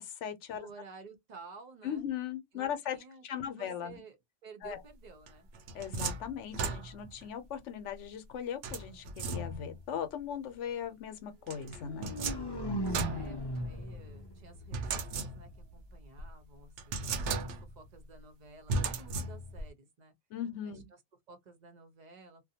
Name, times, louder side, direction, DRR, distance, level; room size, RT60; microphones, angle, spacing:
voice 1, 0.0-0.7 1.8-3.0 3.2-4.0 4.6-4.8 5.7-12.2 20.3-20.9, left 8 dB, 75° left, 1.0 m, -38 dB
voice 2, 0.5-2.1 2.5-5.5 13.1-17.1 17.4-20.1 20.6-20.7 21.3-22.4, right 4 dB, 45° right, 0.7 m, -53 dB
sound 1, 5.3-7.2 8.6-9.8 11.5-14.0 14.7-15.7 16.2-16.3 16.8-17.9 18.7-19.7, right 3 dB, 75° right, 0.9 m, -36 dB
sound 2, 11.7-15.7, equal, 40° left, 0.3 m, -38 dB
2.5 x 2.1 x 2.7 m
omnidirectional pair, 1.3 m